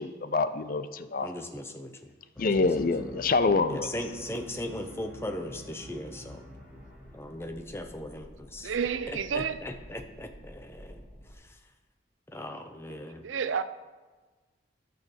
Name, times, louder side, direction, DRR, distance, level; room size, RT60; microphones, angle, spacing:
voice 1, 0.0-1.3 2.4-3.9, left 3 dB, 45° left, 12 dB, 0.5 m, -26 dB
voice 2, 1.2-2.9 3.7-6.5 7.1-8.7 9.1-11.7 12.3-13.3, left 1 dB, 15° left, 6 dB, 0.7 m, -39 dB
sound 1, 2.3-11.3, equal, 5° right, 2.6 m, -48 dB
voice 3, 8.6-9.6 13.2-13.6, right 6 dB, 90° right, 13 dB, 0.5 m, -30 dB
12.0 x 6.4 x 6.3 m, 1.3 s
head